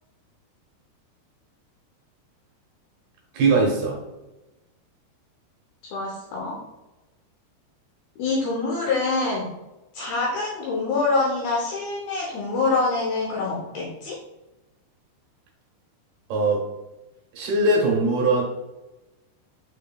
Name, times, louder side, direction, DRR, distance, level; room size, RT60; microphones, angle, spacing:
voice 1, 3.3-4.0 16.3-16.6 17.3-18.4, right 2 dB, 70° right, -2 dB, 2.7 m, -20 dB
voice 2, 5.9-6.6 8.2-9.5 9.9-14.2, left 3 dB, 80° left, -3 dB, 2.2 m, -25 dB
6.1 x 3.8 x 2.2 m, 1.0 s
omnidirectional pair, 5.1 m